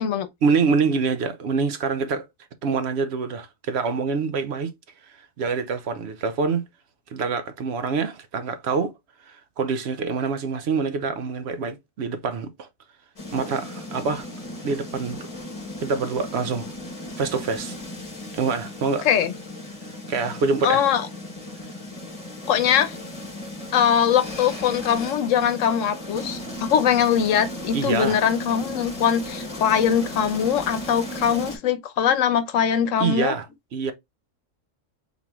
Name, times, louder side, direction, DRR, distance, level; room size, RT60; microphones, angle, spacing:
voice 1, 0.4-2.3 2.6-4.7 5.4-6.6 7.1-8.9 9.2-12.7 13.3-14.3 14.6-15.3 15.8-16.7 17.2-17.8 18.3-19.1 20.1-20.8 27.7-28.2 33.0-33.5 33.7-33.9, right 5 dB, 65° right, 0.8 m, -25 dB
sound 1, 13.2-31.6, left 1 dB, 30° left, 1.3 m, -36 dB
voice 2, 20.6-21.1 22.5-23.0 23.7-33.3, left 8 dB, 85° left, 1.0 m, -21 dB
4.0 x 3.0 x 3.4 m
omnidirectional pair, 1.3 m